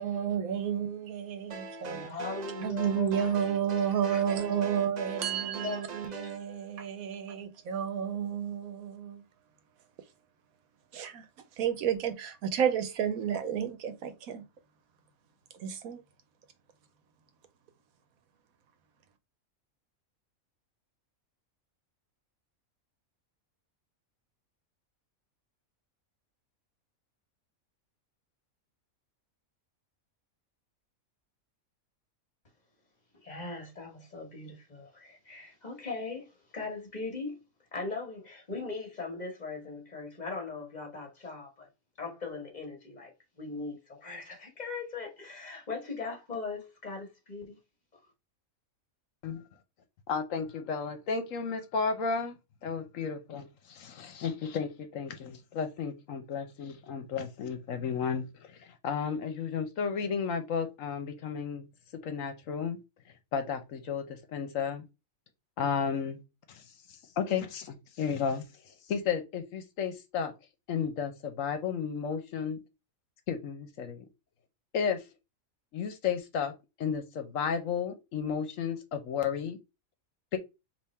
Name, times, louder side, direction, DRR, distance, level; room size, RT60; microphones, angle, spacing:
voice 1, 0.0-2.0 2.6-9.2 10.9-11.2 11.6-14.4 15.6-16.0, right 8 dB, 85° right, 1.2 m, -31 dB
sound 1, 1.5-6.4, right 4 dB, 70° right, 0.4 m, -42 dB
voice 2, 1.8-3.3 3.9-4.2 5.6-6.2 33.2-37.4 37.7-41.7 42.0-47.6, left 4 dB, 35° left, 1.3 m, -39 dB
voice 3, 50.1-52.4 52.6-61.6 62.0-62.8 63.3-64.9 65.6-66.2 66.5-66.6 67.2-68.4 68.9-70.3 70.7-72.6 73.3-74.1 74.7-75.0 75.7-76.5 76.8-79.6 80.3-80.4, left 6 dB, 70° left, 1.1 m, -33 dB
3.6 x 2.9 x 4.1 m
omnidirectional pair, 1.5 m